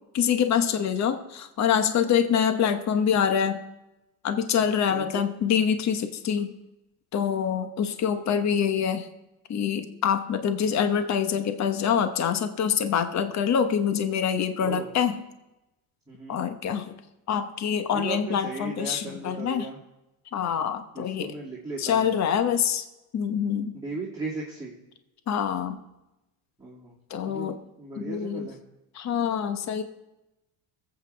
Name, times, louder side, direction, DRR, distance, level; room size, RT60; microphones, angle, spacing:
voice 1, 0.1-3.6 4.2-6.5 7.1-9.1 9.5-15.2 16.3-16.9 17.3-19.7 20.3-21.3 21.8-22.8 23.1-23.7 25.3-25.8 27.1-27.6 28.0-28.5 28.9-29.8, left 8 dB, 40° left, 8 dB, 1.0 m, -25 dB
voice 2, 4.9-5.3 14.6-14.9 16.1-16.4 17.9-19.8 20.9-22.1 23.7-24.7 26.6-27.0 27.2-28.6, right 3 dB, 10° right, -7 dB, 2.5 m, -37 dB
23.0 x 8.2 x 3.4 m, 0.96 s
cardioid pair, 115°, 44 cm